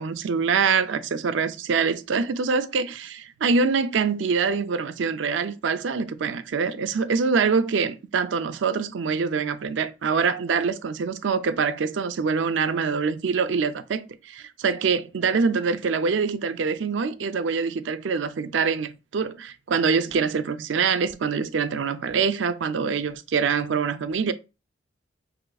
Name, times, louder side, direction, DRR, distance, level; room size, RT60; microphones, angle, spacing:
voice 1, 0.0-24.3, right 5 dB, 75° right, 0.4 m, -25 dB
5.0 x 3.0 x 2.3 m
head